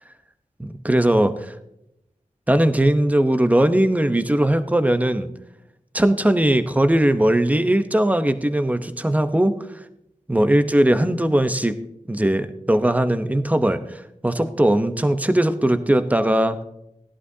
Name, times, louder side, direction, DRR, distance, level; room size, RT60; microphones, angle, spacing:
voice 1, 0.6-1.5 2.5-5.3 5.9-9.6 10.3-11.8 12.1-16.6, right 1 dB, 10° right, 10 dB, 0.8 m, -19 dB
16.5 x 11.0 x 2.8 m, 0.83 s
wide cardioid pair, 75°, 13 cm